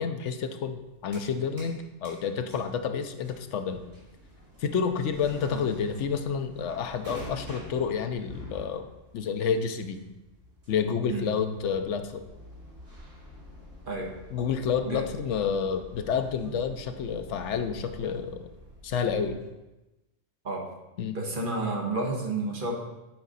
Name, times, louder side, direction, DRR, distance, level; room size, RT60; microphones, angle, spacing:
voice 1, 0.0-3.8 4.6-8.9 9.1-10.0 10.7-12.2 14.3-18.5 18.8-19.4 21.0-21.2, left 6 dB, 70° left, 8 dB, 0.9 m, -29 dB
sound 1, 0.7-1.8 2.0-19.5, left 1 dB, 60° right, 3.2 m, -48 dB
voice 2, 21.1-22.7, right 2 dB, 45° right, -1 dB, 1.4 m, -30 dB
9.1 x 5.0 x 4.0 m, 1.0 s
omnidirectional pair, 1.3 m